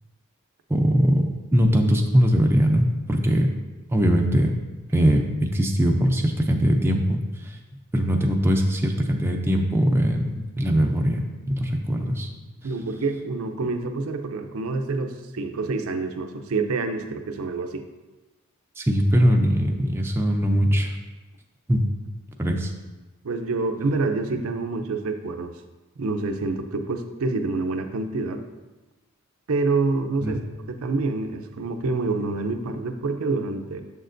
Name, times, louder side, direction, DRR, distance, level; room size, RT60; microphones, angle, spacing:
voice 1, 0.7-3.5 3.9-4.6 4.9-7.6 7.9-12.3 18.8-21.0 21.7-21.9 22.4-22.7 30.2-30.4, equal, 10° right, 1 dB, 0.4 m, -21 dB
voice 2, 12.6-17.9 23.2-25.5 26.0-28.4 29.5-30.4 30.7-33.8, right 3 dB, 70° right, 6 dB, 0.5 m, -27 dB
6.8 x 6.5 x 2.6 m, 1.2 s
head